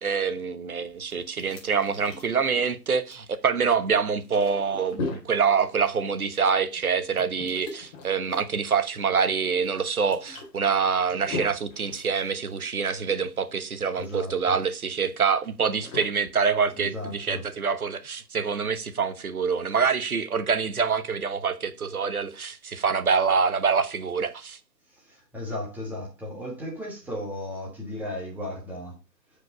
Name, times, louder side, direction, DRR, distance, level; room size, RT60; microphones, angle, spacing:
voice 1, 0.0-24.6, right 6 dB, 60° right, 1.3 m, -26 dB
sound 1, 0.8-17.3, left 3 dB, 20° left, 2.1 m, -41 dB
voice 2, 14.0-14.6 16.8-17.5 24.9-29.0, left 1 dB, 5° right, 1.7 m, -35 dB
9.3 x 5.2 x 5.7 m
figure-of-eight pair, 140°, 50 cm